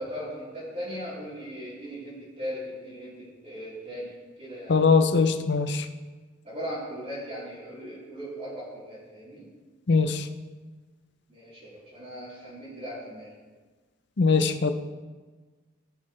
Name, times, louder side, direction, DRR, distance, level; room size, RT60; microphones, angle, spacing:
voice 1, 0.0-4.1 4.4-4.8 6.4-9.5 11.3-13.3, equal, 35° right, -12 dB, 3.4 m, -38 dB
voice 2, 4.7-5.9 9.9-10.3 14.2-14.7, left 4 dB, 60° left, 9 dB, 0.6 m, -21 dB
17.0 x 6.4 x 3.2 m, 1.3 s
head